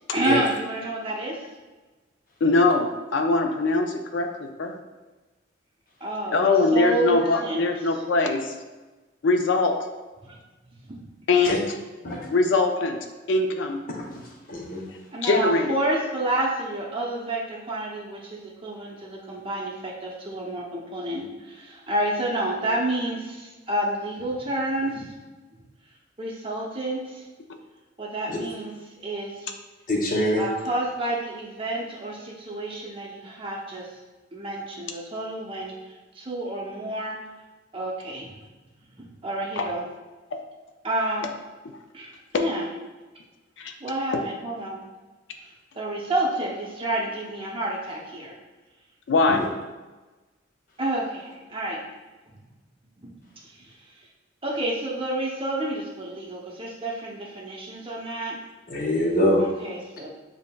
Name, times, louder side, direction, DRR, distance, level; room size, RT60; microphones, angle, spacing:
voice 1, 0.1-1.4 6.0-7.7 10.2-10.4 10.9-11.0 15.1-25.1 26.2-27.2 28.0-28.7 29.0-29.5 30.4-33.9 34.3-35.7 36.2-37.2 37.7-38.4 39.0-39.8 40.8-41.3 41.9-42.7 43.8-44.8 45.4-48.3 50.8-51.8 52.4-52.5 53.0-53.1 54.4-58.4 59.4-60.1, right 1 dB, 30° right, -3 dB, 0.7 m, -29 dB
voice 2, 2.4-4.8 6.3-8.5 9.2-9.8 11.3-11.6 12.3-13.0 13.3-13.8 15.2-15.7 39.6-39.7 42.3-42.4 43.6-43.7 44.1-44.2 49.1-49.4, left 3 dB, 75° left, 5 dB, 0.4 m, -22 dB
voice 3, 14.5-14.8 28.3-28.4 29.9-30.4 49.3-49.4 58.7-59.4, left 1 dB, 45° left, -1 dB, 0.8 m, -23 dB
7.0 x 2.8 x 2.3 m, 1.2 s
head